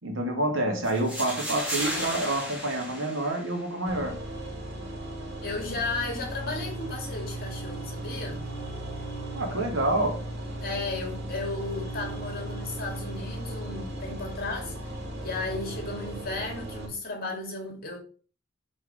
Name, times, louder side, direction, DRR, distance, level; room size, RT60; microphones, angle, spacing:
voice 1, 0.0-4.2 9.3-10.2, right 1 dB, 75° right, 2.0 m, -28 dB
sound 1, 0.8-3.9, equal, 5° right, 2.6 m, -34 dB
sound 2, 3.9-16.9, right 1 dB, 55° right, 3.1 m, -36 dB
voice 2, 5.4-8.5 10.6-14.9 15.2-18.0, left 3 dB, 50° left, 2.6 m, -34 dB
5.8 x 4.6 x 4.9 m
head